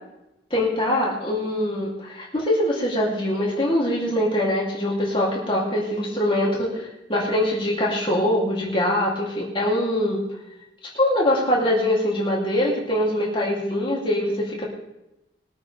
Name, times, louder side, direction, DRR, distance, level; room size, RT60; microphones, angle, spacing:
voice 1, 0.5-10.2 10.9-14.7, left 1 dB, 25° left, -4 dB, 3.2 m, -23 dB
21.5 x 9.1 x 3.5 m, 0.92 s
head